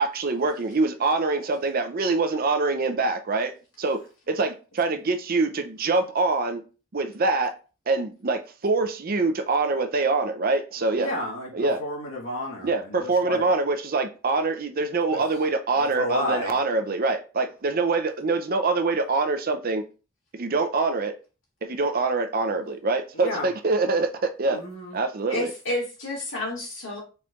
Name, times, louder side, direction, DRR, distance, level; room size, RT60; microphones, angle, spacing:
voice 1, 0.0-3.5 3.8-4.0 4.3-6.6 6.9-7.5 7.9-11.1 11.5-11.8 12.6-19.9 20.3-21.1 21.6-24.6 24.9-25.5, right 3 dB, 50° right, 7 dB, 0.6 m, -24 dB
voice 2, 11.0-13.5 15.1-15.2 15.8-16.5 23.1-23.5 24.5-25.0, left 1 dB, 85° left, -2 dB, 1.5 m, -31 dB
voice 3, 25.3-27.0, left 1 dB, 70° left, -3 dB, 2.1 m, -30 dB
4.3 x 4.3 x 2.5 m, 0.33 s
head